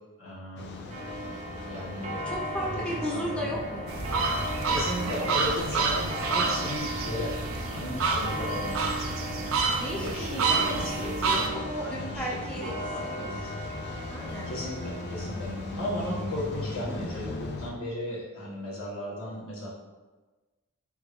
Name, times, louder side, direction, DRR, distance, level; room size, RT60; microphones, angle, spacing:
voice 1, 0.2-0.8 1.6-2.3 2.6-3.5 4.7-7.3 7.7-9.4 10.0-13.7 14.5-15.5 15.7-19.7, left 1 dB, 80° left, -6 dB, 1.4 m, -36 dB
sound 1, 0.6-17.7, left 2 dB, 55° left, 0.4 m, -39 dB
Clock, 0.9-17.0, equal, 35° right, 0.7 m, -38 dB
voice 2, 2.2-4.2 4.7-4.9 5.2-5.6 5.9-6.2 9.8-13.4 14.1-14.5 19.0-19.4, equal, 5° left, -5 dB, 0.5 m, -36 dB
sound 2, 3.9-11.5, right 4 dB, 70° right, 0.5 m, -29 dB
3.9 x 3.5 x 3.1 m, 1.2 s
head